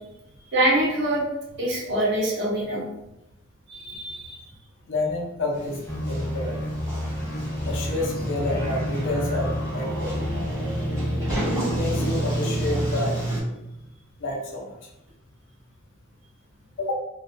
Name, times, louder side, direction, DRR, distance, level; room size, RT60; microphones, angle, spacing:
voice 1, 0.5-1.2 1.6-2.8 3.7-4.4, right 1 dB, 55° right, -5 dB, 0.8 m, -24 dB
voice 2, 4.9-5.8 6.1-6.8 7.6-10.3 11.7-13.3 14.2-14.9 16.8-16.9, left 2 dB, 60° left, -1 dB, 0.6 m, -29 dB
Sliding door, 5.5-13.4, right 1 dB, 15° right, 0.8 m, -30 dB
sound 1, 5.9-11.4 11.6-13.0, equal, 15° left, 0.4 m, -30 dB
2.3 x 2.1 x 2.6 m, 0.88 s
head